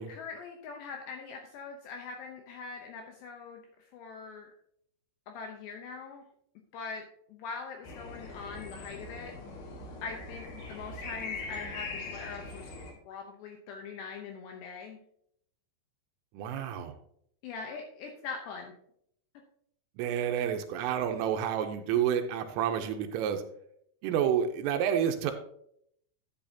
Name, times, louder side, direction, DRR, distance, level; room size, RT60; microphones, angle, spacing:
voice 1, 0.1-3.6 3.9-4.5 5.3-6.2 6.7-7.0 7.3-9.3 10.0-12.7 13.1-15.0 17.4-18.7, left 5 dB, 75° left, 2 dB, 2.7 m, -42 dB
sound 1, 7.8-12.9, left 3 dB, 60° left, 2.8 m, -41 dB
voice 2, 16.3-17.0 20.0-23.4 24.0-25.3, right 9 dB, 85° right, 6 dB, 3.3 m, -29 dB
12.5 x 8.6 x 2.9 m, 0.69 s
omnidirectional pair, 5.9 m